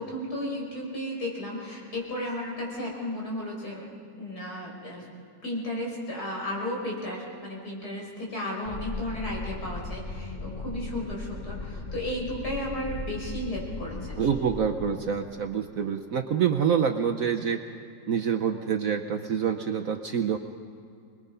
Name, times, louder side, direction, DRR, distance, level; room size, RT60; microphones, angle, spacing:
voice 1, 0.0-3.9 4.2-5.1 5.4-14.3, left 1 dB, 60° left, -2 dB, 5.8 m, -34 dB
sound 1, 8.6-15.0, left 3 dB, 30° left, 0.9 m, -37 dB
voice 2, 14.2-17.6 18.1-20.4, right 7 dB, 60° right, 6 dB, 1.0 m, -26 dB
26.0 x 21.0 x 5.5 m, 2.4 s
omnidirectional pair, 1.9 m